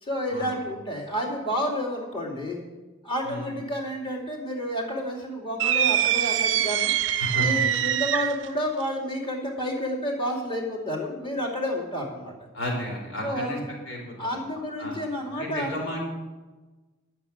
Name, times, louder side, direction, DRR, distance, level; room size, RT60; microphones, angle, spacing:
voice 1, 0.0-2.6 3.0-6.9 7.3-12.3 13.2-13.6 14.2-15.7, equal, 25° left, -3 dB, 2.5 m, -30 dB
sound 1, 5.6-8.5, right 11 dB, 65° right, 0.5 m, -24 dB
voice 2, 7.2-7.6 12.5-13.6 13.9-14.3 14.8-15.0 15.3-16.0, equal, 70° left, -2 dB, 4.0 m, -32 dB
11.0 x 6.1 x 8.6 m, 1.2 s
head